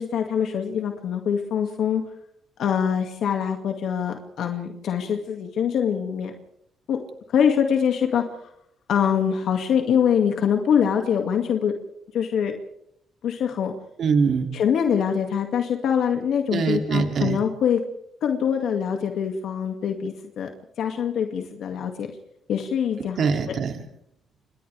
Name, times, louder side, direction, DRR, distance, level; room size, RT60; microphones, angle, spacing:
voice 1, 0.0-2.0 2.6-6.3 6.9-7.0 7.3-8.4 8.9-11.7 12.1-12.5 13.2-13.7 14.5-17.8 18.2-20.5 20.8-22.1 22.5-23.3, left 8 dB, 70° left, 4 dB, 2.3 m, -24 dB
voice 2, 14.0-14.5 16.5-17.4 23.2-23.8, right 5 dB, 60° right, 4 dB, 2.8 m, -23 dB
29.0 x 25.5 x 3.5 m, 0.74 s
cardioid pair, 90°, 0 cm